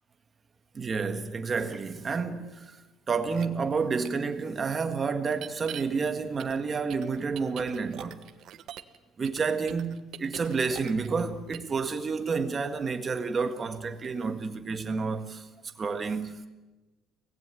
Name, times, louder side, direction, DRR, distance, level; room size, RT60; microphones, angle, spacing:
voice 1, 0.7-2.7 3.1-8.2 9.2-15.5 15.8-16.4, right 5 dB, 25° right, 1.7 m, -30 dB
sound 1, 3.3-3.5 4.0-4.1 5.3-5.8 6.4-9.0 9.2-11.2 11.5-11.7, right 11 dB, 50° right, 1.2 m, -42 dB
24.5 x 19.0 x 9.1 m
cardioid pair, 165°, 0 cm